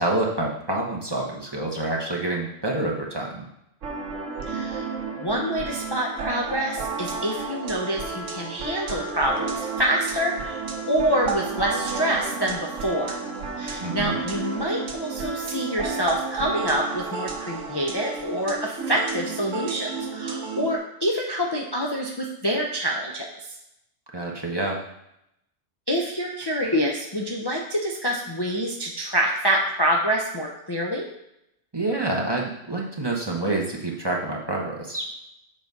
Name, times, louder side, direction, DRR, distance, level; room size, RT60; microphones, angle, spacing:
voice 1, 0.0-3.5 13.8-14.2 24.1-24.8 31.7-35.1, right 2 dB, 20° right, -2 dB, 1.0 m, -27 dB
sound 1, 3.8-20.8, right 4 dB, 80° right, 1.3 m, -32 dB
voice 2, 4.5-4.9 5.2-10.6 10.9-13.2 13.6-23.3 25.9-31.1, equal, 25° left, -1 dB, 0.6 m, -26 dB
7.5 x 4.0 x 5.3 m, 0.82 s
omnidirectional pair, 1.3 m